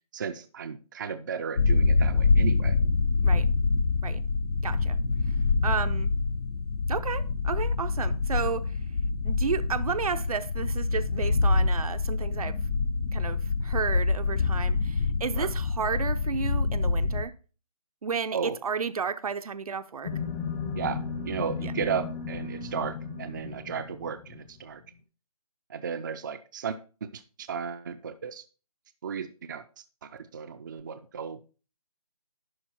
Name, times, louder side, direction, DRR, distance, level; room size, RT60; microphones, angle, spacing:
voice 1, 0.1-2.8 15.4-15.5 18.3-18.6 20.8-24.8 25.7-28.4 29.0-31.4, right 6 dB, 30° right, 0.4 m, -34 dB
sound 1, 1.6-17.3, left 4 dB, 75° left, 0.9 m, -26 dB
voice 2, 4.6-5.0 5.6-6.1 6.9-8.7 9.2-12.6 13.1-17.3 18.0-20.1, right 6 dB, 65° right, 0.7 m, -32 dB
sound 2, 20.0-24.6, left 5 dB, 20° left, 0.7 m, -35 dB
11.0 x 4.4 x 4.3 m
figure-of-eight pair, 160°, 20 cm